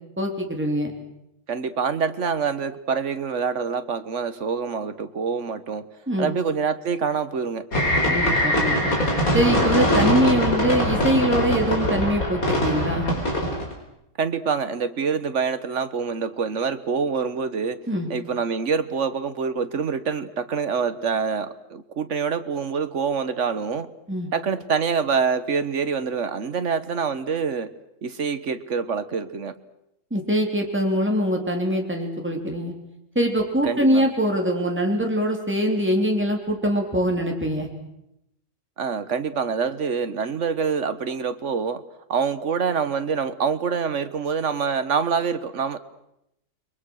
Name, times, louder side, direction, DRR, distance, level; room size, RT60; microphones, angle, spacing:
voice 1, 0.2-0.9 6.1-6.3 8.1-8.9 9.3-13.1 17.9-18.1 24.1-24.3 30.1-32.7 33.2-37.7, equal, 5° right, 2 dB, 3.5 m, -23 dB
voice 2, 1.5-5.9 6.2-7.7 14.2-17.8 18.1-23.9 24.3-27.7 28.0-29.5 33.6-34.1 38.8-41.8 42.1-45.8, right 6 dB, 55° right, 11 dB, 1.5 m, -26 dB
sound 1, 7.7-13.7, equal, 65° left, 5.0 m, -22 dB
29.5 x 22.5 x 6.5 m, 0.83 s
omnidirectional pair, 1.6 m